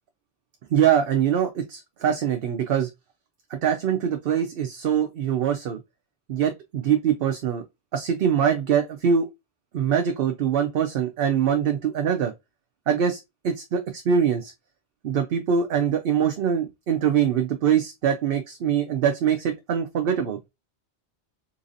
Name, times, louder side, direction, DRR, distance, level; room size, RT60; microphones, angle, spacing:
voice 1, 0.7-2.9 3.6-5.8 6.3-7.6 7.9-9.2 9.7-12.3 12.9-13.2 13.4-13.8 14.1-14.5 15.0-20.4, right 8 dB, 60° right, 0.7 m, -23 dB
3.9 x 2.7 x 2.5 m
omnidirectional pair, 1.2 m